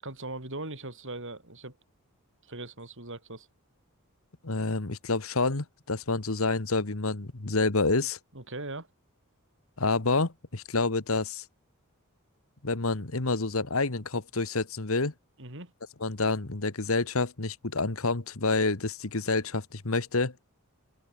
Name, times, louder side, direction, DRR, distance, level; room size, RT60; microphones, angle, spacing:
voice 1, 0.0-1.7 2.4-3.5 8.3-8.9 15.4-15.7, right 2 dB, 60° right, 6.6 m, -39 dB
voice 2, 4.4-8.2 9.8-11.4 12.6-15.1 16.0-20.3, left 3 dB, 70° left, 1.6 m, -28 dB
open air
head